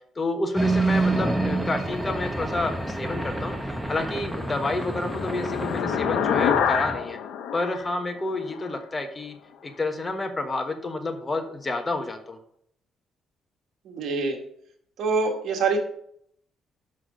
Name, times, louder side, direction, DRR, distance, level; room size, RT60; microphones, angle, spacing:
voice 1, 0.1-3.5 3.9-7.2 7.5-9.3 9.6-12.4, left 2 dB, 25° left, 6 dB, 1.3 m, -29 dB
sound 1, 0.5-7.0, right 2 dB, 5° right, 1.2 m, -28 dB
sound 2, 4.1-8.7, left 8 dB, 85° left, 0.9 m, -28 dB
voice 2, 13.9-14.4 15.0-15.8, right 4 dB, 70° right, 3 dB, 1.8 m, -25 dB
6.4 x 6.1 x 5.1 m, 0.68 s
cardioid pair, 90°, 0 cm